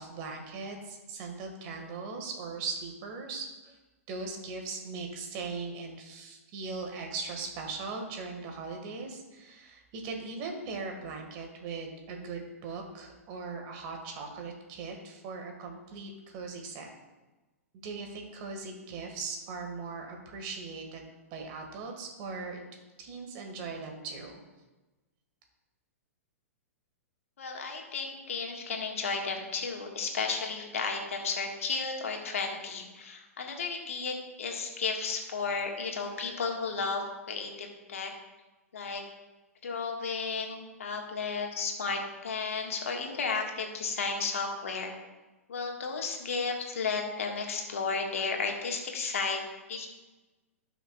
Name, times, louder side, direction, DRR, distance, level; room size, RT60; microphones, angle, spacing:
voice 1, 0.0-3.8 4.1-16.9 17.8-22.6 23.0-24.4, right 4 dB, 40° right, 3 dB, 1.8 m, -39 dB
voice 2, 27.4-38.1 38.7-39.0 39.6-45.0 45.5-49.4 49.7-49.9, left 4 dB, 65° left, 2 dB, 1.6 m, -33 dB
16.5 x 6.0 x 2.4 m, 1.1 s
figure-of-eight pair, 110°, 8 cm